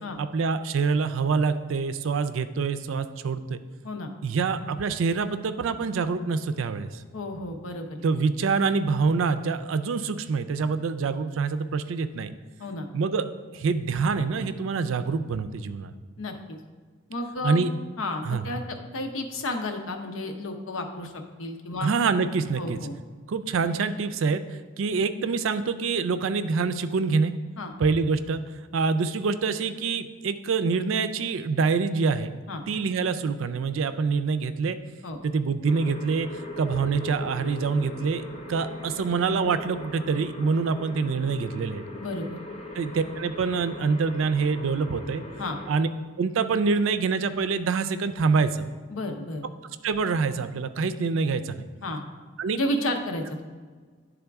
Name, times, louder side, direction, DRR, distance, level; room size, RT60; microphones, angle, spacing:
voice 1, 0.2-3.6 4.2-7.0 8.0-12.3 12.9-13.3 13.5-15.9 17.4-17.7 18.2-18.4 21.8-22.8 23.3-27.3 27.8-28.4 28.7-32.3 32.7-34.8 35.2-41.8 42.7-45.2 45.7-45.9 46.2-48.7 49.8-51.6 52.4-52.6, right 4 dB, 80° right, 11 dB, 0.4 m, -26 dB
voice 2, 7.1-8.0 12.6-12.9 16.2-16.6 17.1-17.6 18.0-21.9 22.6-22.9 27.6-27.7 32.5-32.6 35.0-35.2 41.9-42.4 45.4-45.6 48.9-49.4 51.8-52.0 52.5-53.4, left 1 dB, 85° left, 4 dB, 0.8 m, -32 dB
sound 1, 35.6-45.7, left 1 dB, 30° left, 0.7 m, -40 dB
10.5 x 3.6 x 3.5 m, 1.5 s
head